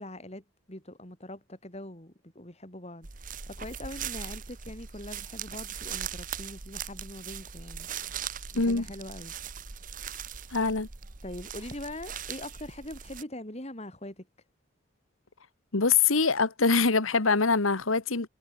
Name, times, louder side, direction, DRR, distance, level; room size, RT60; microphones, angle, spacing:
voice 1, 0.0-7.9 8.5-9.3 11.2-14.3, left 1 dB, 30° left, 3.9 m, -42 dB
sound 1, 3.0-13.2, right 8 dB, 40° right, 1.2 m, -40 dB
voice 2, 8.5-8.8 10.5-10.9 15.7-18.3, left 4 dB, 85° left, 1.6 m, -24 dB
head